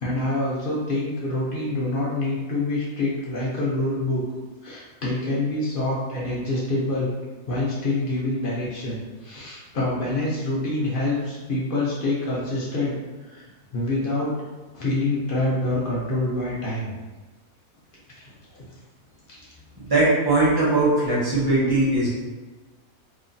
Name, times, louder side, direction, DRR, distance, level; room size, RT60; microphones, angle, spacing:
voice 1, 0.0-4.2 4.6-7.1 7.5-12.9 13.3-13.4 13.7-14.3 14.7-16.9, left 2 dB, 55° left, -6 dB, 0.6 m, -26 dB
voice 2, 19.7-22.1, right 2 dB, 20° right, -8 dB, 0.6 m, -20 dB
3.0 x 2.1 x 2.5 m, 1.2 s
omnidirectional pair, 1.6 m